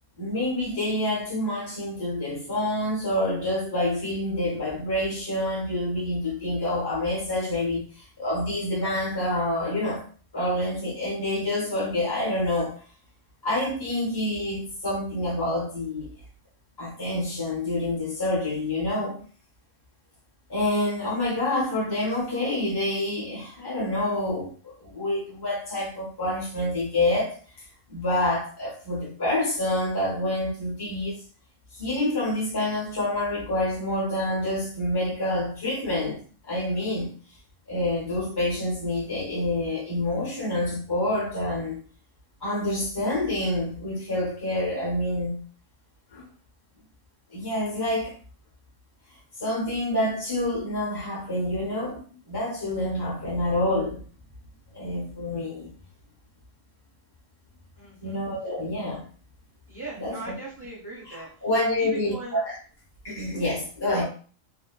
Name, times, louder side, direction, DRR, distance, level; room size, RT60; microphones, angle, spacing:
voice 1, 0.2-10.0 10.3-12.8 13.4-16.1 16.8-19.2 20.5-27.3 27.9-31.2 31.7-37.1 37.7-41.8 42.4-45.4 46.1-46.2 47.3-48.1 49.4-54.0 54.7-55.7 58.0-59.1 60.0-60.3 61.1-62.6 63.0-64.0, left 1 dB, 20° left, 1.1 m, -27 dB
voice 2, 57.8-58.3 59.7-61.3 61.8-62.4 63.9-64.0, right 3 dB, 15° right, 1.2 m, -39 dB
3.0 x 2.7 x 2.4 m
omnidirectional pair, 1.3 m